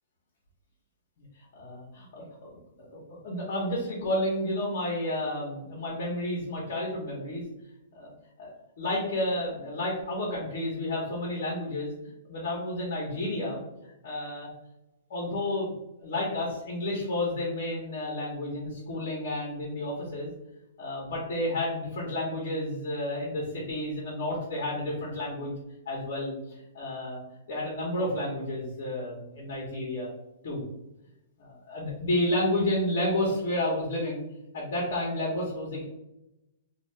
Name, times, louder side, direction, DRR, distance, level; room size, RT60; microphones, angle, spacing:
voice 1, 1.5-2.5 2.8-7.4 7.9-8.1 8.4-8.5 8.8-11.9 12.3-13.6 14.0-14.5 15.1-15.7 16.0-20.3 20.8-25.5 25.9-27.2 27.5-30.1 30.4-30.6 31.4-34.2 34.5-35.9, left 1 dB, 60° left, -4 dB, 0.9 m, -31 dB
2.5 x 2.3 x 3.2 m, 0.91 s
hypercardioid pair, 140°, 0 cm